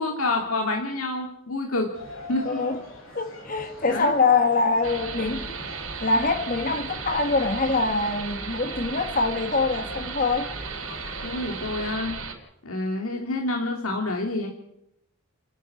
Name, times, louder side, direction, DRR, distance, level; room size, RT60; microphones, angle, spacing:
voice 1, 0.0-1.9 2.3-2.6 3.9-4.1 11.2-12.2 12.6-14.5, left 2 dB, 85° left, 2.5 m, -28 dB
sound 1, 1.9-11.9, left 1 dB, 65° left, 6.3 m, -43 dB
voice 2, 2.4-2.8 3.1-5.5 6.0-10.5, left 3 dB, 40° left, 1.7 m, -24 dB
sound 2, 4.8-12.3, right 5 dB, 75° right, 4.4 m, -35 dB
30.0 x 10.5 x 8.5 m
head